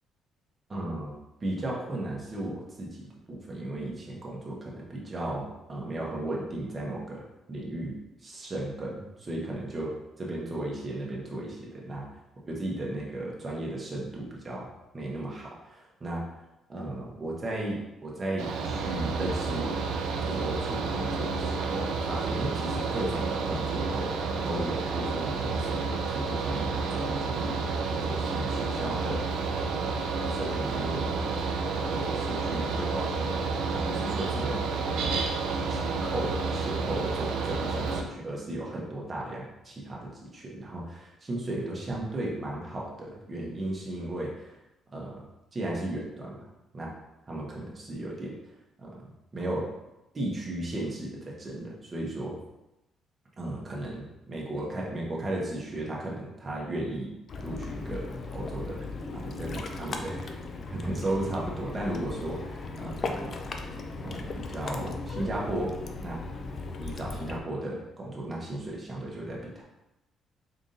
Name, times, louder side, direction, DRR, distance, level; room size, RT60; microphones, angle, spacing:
voice 1, 0.7-1.1 1.4-7.9 8.2-12.1 12.5-14.7 14.9-16.2 16.7-19.7 20.2-24.2 24.4-27.5 27.9-29.3 29.7-30.0 30.3-31.2 31.7-33.3 33.7-34.6 35.1-35.3 35.7-44.5 44.9-45.2 45.5-46.5 46.7-46.9 47.3-48.4 48.8-49.7 50.1-52.3 53.4-57.1 57.4-58.9 59.1-60.4 60.7-63.3 64.0-65.7 66.0-66.2 66.8-69.6, right 1 dB, 30° right, -3 dB, 1.1 m, -35 dB
Mechanical fan, 18.4-38.0, right 4 dB, 90° right, 0.4 m, -30 dB
Ocean, 57.3-67.4, left 3 dB, 45° left, 0.4 m, -37 dB
3.8 x 3.6 x 2.7 m, 0.95 s
cardioid pair, 105°, 0 cm